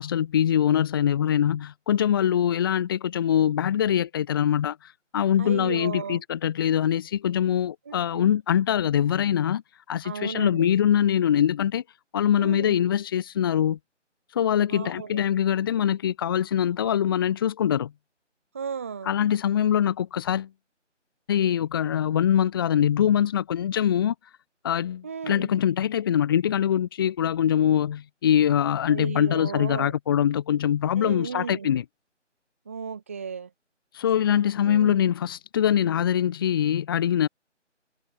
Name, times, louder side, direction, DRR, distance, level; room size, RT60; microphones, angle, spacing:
voice 1, 0.0-9.6 9.9-11.8 12.1-13.8 14.3-17.9 19.1-20.5 21.3-24.1 24.6-31.8 33.9-37.3, left 9 dB, 20° left, 2.7 m, -23 dB
voice 2, 5.4-6.2 7.9-8.3 10.0-10.7 12.4-12.8 14.7-15.2 18.5-19.1 25.0-25.5 28.8-30.0 31.0-31.7 32.7-33.5 34.6-35.0, right 6 dB, 10° right, 1.1 m, -34 dB
figure-of-eight pair, 160°, 37 cm